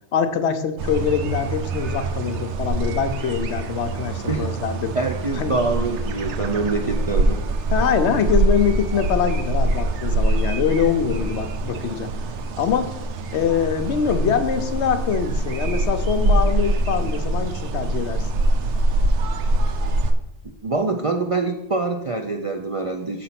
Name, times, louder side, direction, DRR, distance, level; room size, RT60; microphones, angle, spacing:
voice 1, 0.1-4.9 5.4-5.5 7.7-12.1 12.6-12.9 13.3-18.3, left 7 dB, 70° left, 9 dB, 0.9 m, -23 dB
sound 1, 0.8-20.1, right 2 dB, 70° right, 1.0 m, -24 dB
voice 2, 5.0-7.4 20.6-23.2, right 3 dB, 50° right, 3 dB, 0.4 m, -25 dB
6.8 x 4.2 x 5.8 m, 0.87 s
omnidirectional pair, 1.2 m